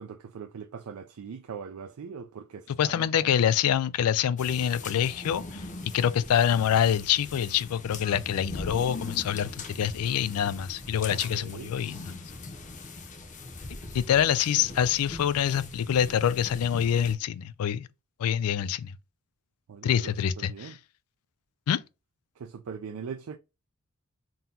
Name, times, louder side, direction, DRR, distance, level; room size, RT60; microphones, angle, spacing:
voice 1, 0.0-3.3 11.1-11.7 14.1-14.4 19.7-20.8 22.4-23.4, right 6 dB, 80° right, 0.4 m, -41 dB
voice 2, 2.7-12.2 13.9-17.9 18.2-18.9 19.8-20.8 21.7-21.8, left 9 dB, 80° left, 0.3 m, -26 dB
sound 1, 4.4-17.1, left 2 dB, 35° left, 0.6 m, -41 dB
3.8 x 2.8 x 3.7 m
head